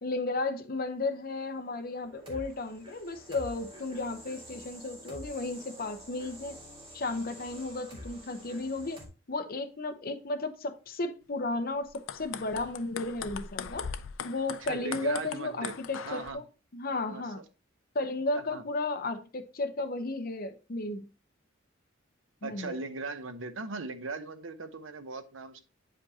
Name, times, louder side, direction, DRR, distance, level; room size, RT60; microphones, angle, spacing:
voice 1, 0.0-6.6 6.9-9.0 9.3-13.9 14.2-16.4 16.7-17.4 17.9-21.0 22.4-22.8, left 2 dB, 50° left, 0.8 m, -34 dB
sound 1, 1.7-9.1, equal, 25° right, 1.9 m, -48 dB
sound 2, 11.8-16.3, left 7 dB, 75° left, 0.4 m, -40 dB
voice 2, 14.6-15.7 16.1-16.4 17.0-17.4 18.3-18.6 22.4-25.6, right 4 dB, 75° right, 0.8 m, -39 dB
8.7 x 5.1 x 2.8 m
head